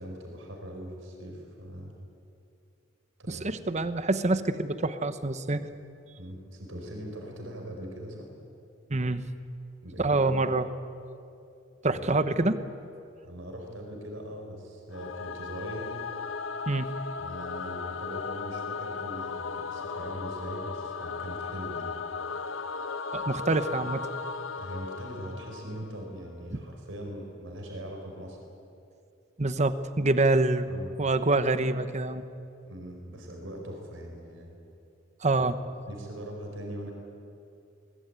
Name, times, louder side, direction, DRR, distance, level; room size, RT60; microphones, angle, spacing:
voice 1, 0.0-1.9 3.2-3.5 6.2-8.3 9.8-10.2 11.9-12.0 13.2-15.9 17.2-21.9 24.6-28.4 30.7-30.9 32.6-34.5 35.3-35.4 35.9-36.9, equal, 75° right, 1 dB, 5.1 m, -41 dB
voice 2, 3.3-5.7 8.9-9.2 10.0-10.7 11.8-12.6 16.7-16.9 23.1-24.1 26.5-26.6 29.4-30.7 31.0-32.2 35.2-35.6, right 2 dB, 35° right, 11 dB, 1.1 m, -26 dB
Singing / Musical instrument, 14.9-26.2, left 5 dB, 75° left, 1.0 m, -36 dB
23.0 x 20.5 x 9.1 m, 2.6 s
head